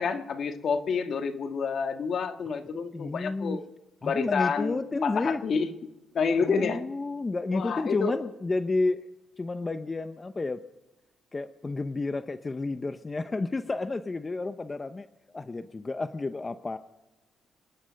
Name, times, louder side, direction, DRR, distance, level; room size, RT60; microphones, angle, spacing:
voice 1, 0.0-3.6 4.0-5.7 6.1-6.8 7.5-8.2, left 5 dB, 55° left, 8 dB, 1.7 m, -28 dB
voice 2, 2.9-3.6 4.0-5.4 6.4-9.0 9.4-10.6 11.3-15.1 15.3-16.8, left 3 dB, 25° left, 11 dB, 0.7 m, -31 dB
27.0 x 10.0 x 5.3 m, 1.0 s
cardioid pair, 90°, 0 cm